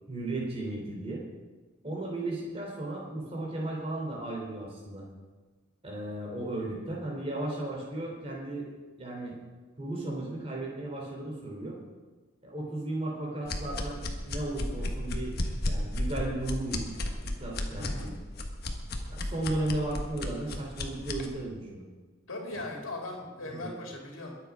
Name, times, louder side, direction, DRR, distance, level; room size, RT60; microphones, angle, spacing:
voice 1, 0.1-1.2 1.8-5.1 5.8-8.7 9.0-9.3 9.8-11.8 12.4-14.0 14.3-15.4 15.6-16.9 17.2-18.1 19.1-21.8 23.4-23.6, right 2 dB, 30° right, -2 dB, 3.4 m, -35 dB
sound 1, 13.5-21.3, left 1 dB, 50° left, 1.4 m, -33 dB
voice 2, 17.8-18.1 22.3-24.4, left 2 dB, 80° left, 0 dB, 2.6 m, -39 dB
22.0 x 7.8 x 4.9 m, 1.3 s
head